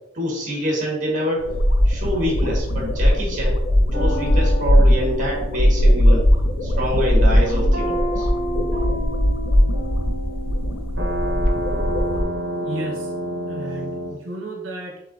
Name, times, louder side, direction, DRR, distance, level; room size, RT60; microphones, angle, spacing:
voice 1, 0.1-1.4 1.8-3.6 4.0-6.2 6.6-8.3, equal, 40° right, -1 dB, 1.4 m, -25 dB
sound 1, 1.4-12.2, equal, 80° left, 0.6 m, -19 dB
sound 2, 3.9-14.1, equal, 60° right, 0.9 m, -30 dB
voice 2, 12.6-13.1 13.5-15.0, right 2 dB, 85° right, 0 dB, 0.6 m, -33 dB
6.7 x 2.8 x 2.6 m, 0.92 s
head